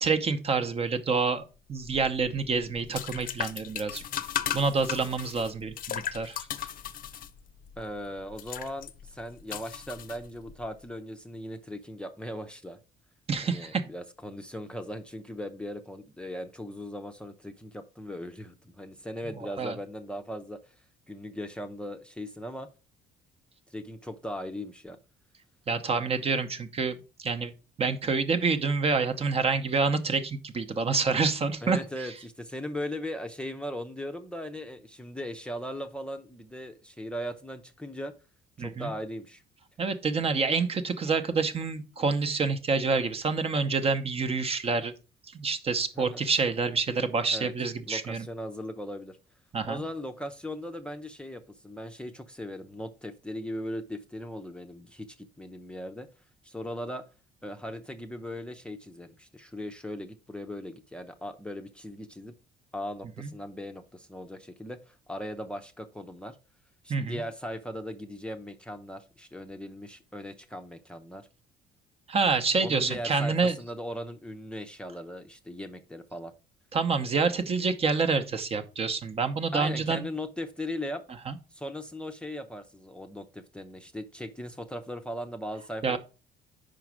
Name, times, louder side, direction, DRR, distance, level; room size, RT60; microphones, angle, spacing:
voice 1, 0.0-1.4 1.7-4.0 4.5-6.4 13.3-13.8 19.6-19.7 25.7-27.5 27.8-31.8 38.6-38.9 39.8-44.9 45.3-48.2 49.5-49.8 63.2-63.3 66.9-67.2 72.1-73.5 76.7-80.1 81.3-81.4 85.8-86.0, right 4 dB, 35° right, 9 dB, 0.8 m, -27 dB
sound 1, 1.8-10.7, left 10 dB, 55° left, 0.6 m, -37 dB
voice 2, 7.8-12.8 13.4-20.6 21.1-22.7 23.7-25.0 31.6-38.1 38.6-39.4 45.9-46.2 47.3-47.5 47.9-49.2 49.6-56.1 56.4-57.0 57.4-62.3 62.7-66.4 66.8-71.3 72.6-76.3 79.5-81.0 81.5-86.0, equal, 5° left, 4 dB, 0.6 m, -38 dB
5.1 x 4.7 x 6.0 m, 0.33 s
cardioid pair, 110°, 17 cm